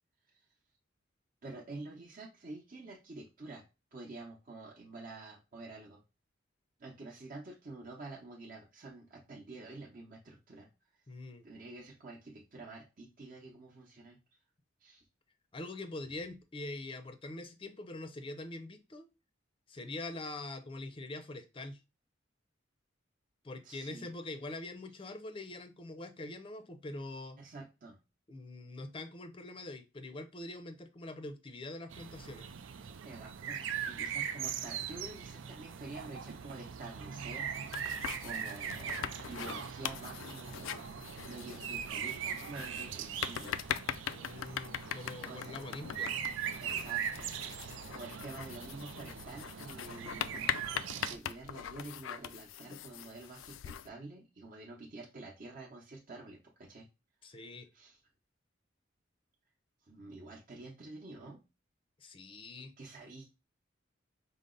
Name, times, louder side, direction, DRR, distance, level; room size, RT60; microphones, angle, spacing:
voice 1, 1.4-3.6 3.9-6.0 6.8-10.7 11.4-14.2 14.8-15.0 23.6-24.1 27.4-28.0 33.0-40.7 41.2-43.9 45.3-45.6 46.6-47.3 47.9-50.6 51.1-56.9 57.7-58.0 59.9-61.4 62.6-63.3, right 2 dB, 45° right, -2 dB, 0.8 m, -48 dB
voice 2, 11.1-11.5 15.5-19.1 19.7-21.8 23.4-27.4 28.3-32.5 44.1-46.1 57.2-57.7 62.0-62.7, left 2 dB, 30° left, 8 dB, 0.5 m, -44 dB
sound 1, 31.9-51.2, right 8 dB, 80° right, 0.4 m, -40 dB
sound 2, 37.5-53.9, left 9 dB, 90° left, 0.3 m, -42 dB
5.2 x 2.0 x 3.8 m, 0.28 s
head